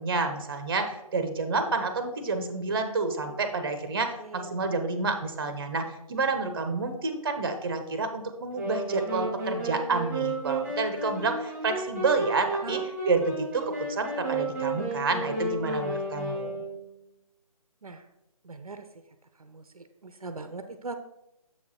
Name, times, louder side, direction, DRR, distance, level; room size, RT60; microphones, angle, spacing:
voice 1, 0.0-12.8 13.1-16.7, right 3 dB, 40° right, 7 dB, 0.9 m, -29 dB
voice 2, 4.2-4.5 12.6-12.8 17.8-18.0 18.4-18.8 19.4-21.0, right 3 dB, 70° right, 9 dB, 0.7 m, -40 dB
sound 1, 8.5-17.0, right 2 dB, 5° right, 1.5 m, -32 dB
7.1 x 4.7 x 4.2 m, 0.86 s
figure-of-eight pair, 155°, 19 cm